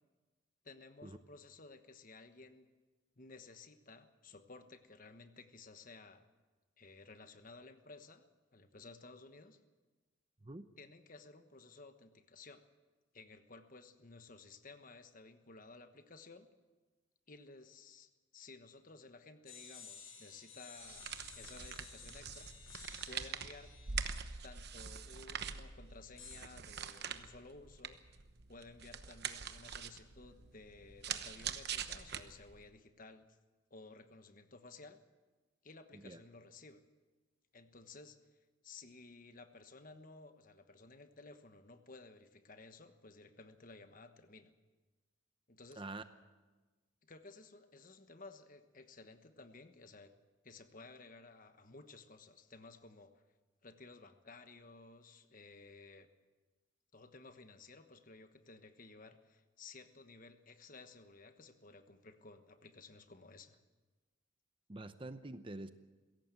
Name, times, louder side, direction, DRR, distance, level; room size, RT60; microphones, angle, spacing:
voice 1, 0.6-2.7 3.2-6.3 6.8-8.3 8.5-9.6 10.8-12.6 13.1-16.5 17.3-21.1 21.3-22.7 23.1-23.7 24.4-28.2 28.5-33.3 33.7-35.0 35.6-36.8 37.5-38.2 38.6-44.5 45.5-45.8 47.0-50.1 50.4-53.2 53.6-56.1 56.9-63.6, left 3 dB, 40° left, 9 dB, 1.2 m, -56 dB
sound 1, 19.5-25.2 26.2-26.4, left 5 dB, 85° left, 7.7 m, -55 dB
sound 2, 20.8-32.6, right 7 dB, 50° right, 1.0 m, -44 dB
voice 2, 64.7-65.7, right 2 dB, 25° right, 10 dB, 0.8 m, -46 dB
22.0 x 17.0 x 7.7 m, 1.3 s
head